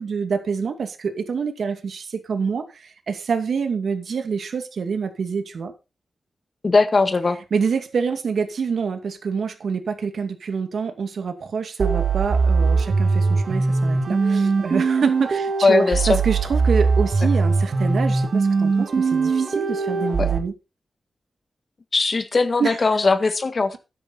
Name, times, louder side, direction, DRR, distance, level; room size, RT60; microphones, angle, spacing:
voice 1, 0.0-5.7 7.5-20.5 22.6-22.8, right 5 dB, 75° right, 7 dB, 2.3 m, -26 dB
voice 2, 6.6-7.4 15.6-16.2 20.2-20.3 21.9-23.8, left 3 dB, 40° left, 10 dB, 1.7 m, -19 dB
sound 1, 11.8-20.4, right 4 dB, 55° right, 2.2 m, -21 dB
13.0 x 10.0 x 4.2 m, 0.28 s
wide cardioid pair, 120°, 0 cm